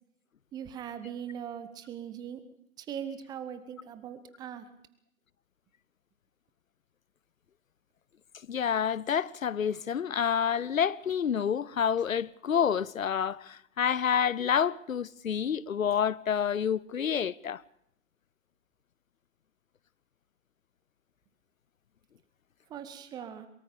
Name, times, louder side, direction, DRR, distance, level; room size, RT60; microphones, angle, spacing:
voice 1, 0.5-2.4 2.8-4.7 22.7-23.5, right 9 dB, 10° right, 0.8 m, -40 dB
voice 2, 8.5-17.6, left 8 dB, 75° left, 0.7 m, -28 dB
23.0 x 22.5 x 5.2 m
figure-of-eight pair, 130°, 40 cm